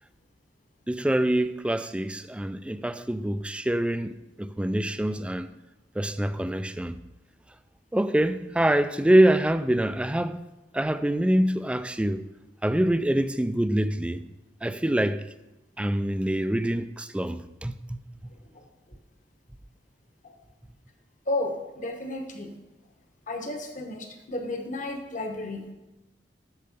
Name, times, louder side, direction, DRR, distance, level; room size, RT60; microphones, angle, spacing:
voice 1, 0.9-5.5 6.0-7.0 7.9-10.4 10.7-12.2 12.6-14.2 14.6-15.2 15.8-18.0, right 1 dB, 5° right, 0.3 m, -25 dB
voice 2, 21.3-22.5 23.3-25.7, left 2 dB, 45° left, 1.1 m, -33 dB
8.8 x 6.7 x 5.3 m
head